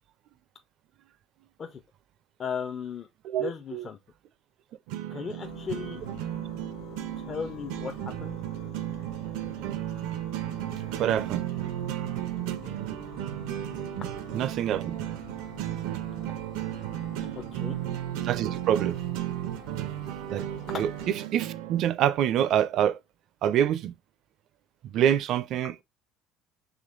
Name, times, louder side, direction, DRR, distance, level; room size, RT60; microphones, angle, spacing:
voice 1, 2.4-3.1 3.4-4.0 5.1-6.0 7.2-8.4 12.6-12.8 17.5-17.8, left 6 dB, 25° left, 0.4 m, -36 dB
voice 2, 3.2-3.9 11.0-11.5 14.3-15.0 18.2-19.0 20.3-20.5 20.7-23.0 23.4-23.9 24.8-25.8, right 10 dB, 45° right, 0.4 m, -26 dB
sound 1, 4.9-21.9, right 13 dB, 90° right, 0.6 m, -34 dB
sound 2, 5.4-21.1, left 8 dB, 70° left, 0.6 m, -48 dB
5.0 x 3.3 x 2.4 m
cardioid pair, 170°, 0 cm